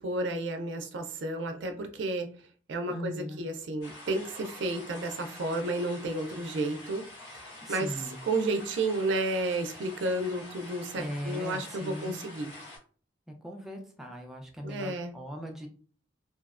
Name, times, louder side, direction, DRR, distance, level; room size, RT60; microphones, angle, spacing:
voice 1, 0.0-2.3 2.7-7.1 7.7-12.5 14.6-15.1, right 2 dB, 70° right, 6 dB, 0.4 m, -32 dB
voice 2, 2.9-3.4 7.6-8.2 11.0-12.2 13.3-15.7, equal, ahead, 2 dB, 0.4 m, -39 dB
sound 1, 3.8-12.8, left 2 dB, 70° left, 1.4 m, -47 dB
2.6 x 2.0 x 2.4 m, 0.42 s
head